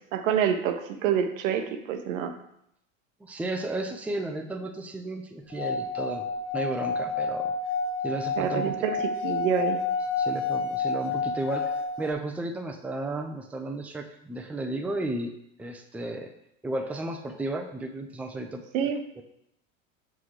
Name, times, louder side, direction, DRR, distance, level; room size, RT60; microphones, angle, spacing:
voice 1, 0.1-2.3 8.4-9.0 9.2-9.8 18.7-19.0, right 8 dB, 75° right, 7 dB, 0.8 m, -27 dB
voice 2, 3.2-6.3 6.5-7.5 8.0-8.7 10.2-15.3 15.6-16.3 16.6-18.6 19.2-19.3, right 2 dB, 5° right, 4 dB, 0.5 m, -33 dB
Singing / Glass, 5.5-12.1, left 4 dB, 60° left, 0.6 m, -29 dB
6.0 x 5.5 x 3.2 m, 0.76 s
hypercardioid pair, 85°, 40 cm